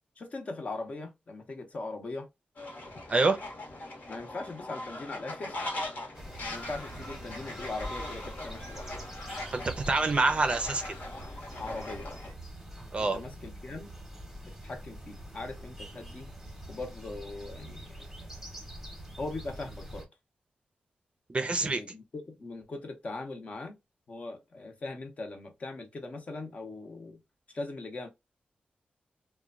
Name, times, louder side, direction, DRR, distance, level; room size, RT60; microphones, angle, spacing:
voice 1, 0.2-2.3 4.1-5.6 6.5-9.0 11.6-12.1 13.0-13.9 14.4-16.3 16.7-18.3 19.2-20.1 21.6-23.8 24.1-27.2 27.5-28.1, left 3 dB, 45° left, 0.7 m, -40 dB
Fowl, 2.6-12.3, left 1 dB, 65° left, 1.0 m, -41 dB
sound 1, 6.1-20.1, right 1 dB, 5° right, 0.8 m, -44 dB
voice 2, 9.5-10.9 12.9-13.2 21.3-21.8, right 3 dB, 35° right, 0.5 m, -26 dB
3.0 x 2.2 x 2.4 m
wide cardioid pair, 120°, 3 cm